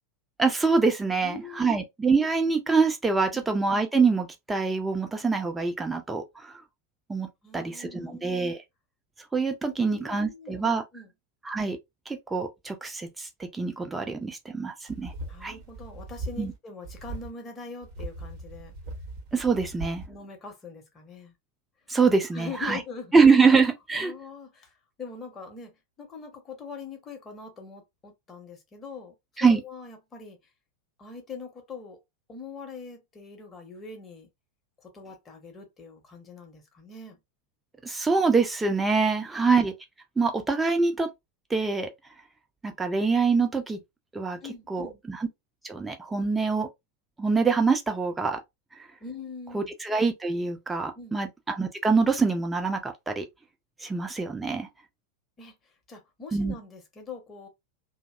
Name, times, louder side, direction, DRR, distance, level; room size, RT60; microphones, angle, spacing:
voice 1, 0.4-6.5 7.1-7.3 7.5-8.6 9.3-10.8 11.5-11.8 12.1-13.3 13.5-15.1 15.4-15.5 16.4-16.5 19.3-20.0 21.9-22.8 23.1-24.1 29.4-29.6 37.8-39.7 40.2-41.1 41.5-41.9 42.6-43.8 44.1-44.4 44.7-45.3 45.6-46.7 47.2-48.4 49.5-53.2 53.8-54.7 56.3-56.5, right 4 dB, 10° right, 0.5 m, -24 dB
voice 2, 1.2-1.8 3.3-3.5 7.4-8.4 9.7-11.1 15.3-18.7 20.0-21.3 22.3-23.1 23.9-29.1 29.4-30.4 31.0-32.0 32.3-34.3 34.8-37.2 39.2-39.6 44.4-45.0 46.1-46.3 49.0-49.7 50.9-51.2 55.4-57.5, left 4 dB, 20° left, 0.9 m, -43 dB
sound 1, 14.9-16.6 16.8-17.3 17.8-20.1, right 2 dB, 40° right, 0.8 m, -39 dB
2.6 x 2.0 x 2.3 m
figure-of-eight pair, 90°, 0 cm